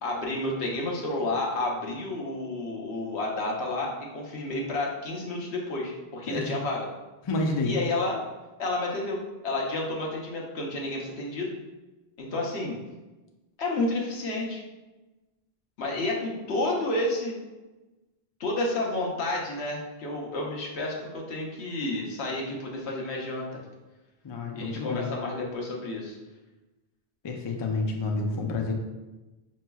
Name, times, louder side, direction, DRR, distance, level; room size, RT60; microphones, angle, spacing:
voice 1, 0.0-6.9 7.6-8.2 8.6-11.5 12.2-12.8 13.6-14.6 15.8-17.4 18.4-23.6 24.5-26.2, left 2 dB, 85° left, -1 dB, 1.1 m, -30 dB
voice 2, 7.2-7.8 24.2-25.1 27.2-28.7, left 3 dB, 40° left, 1 dB, 0.4 m, -29 dB
5.4 x 3.0 x 2.3 m, 1.1 s
omnidirectional pair, 1.1 m